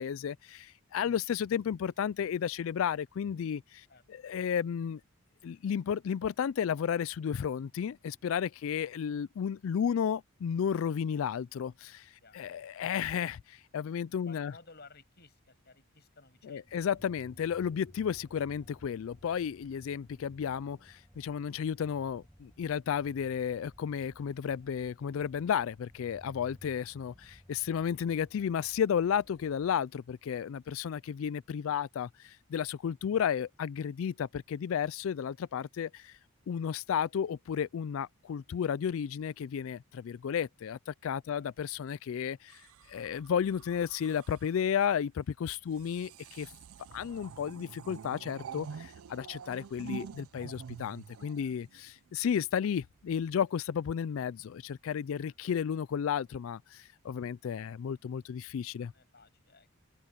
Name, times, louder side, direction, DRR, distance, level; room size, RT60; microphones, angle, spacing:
voice 1, 0.0-5.0 5.4-14.5 16.5-36.2 36.5-46.5 46.9-58.9, left 8 dB, 70° left, 0.3 m, -33 dB
voice 2, 3.9-4.3 12.2-12.5 14.1-16.8 26.4-26.5 41.2-41.5 45.6-45.9 51.3-51.5 55.2-55.4 58.8-59.7, left 3 dB, 45° left, 7.3 m, -58 dB
sound 1, 16.7-29.8, equal, ahead, 4.6 m, -58 dB
sound 2, 42.5-44.6 45.7-52.1 53.0-53.3, right 6 dB, 70° right, 0.4 m, -47 dB
open air
head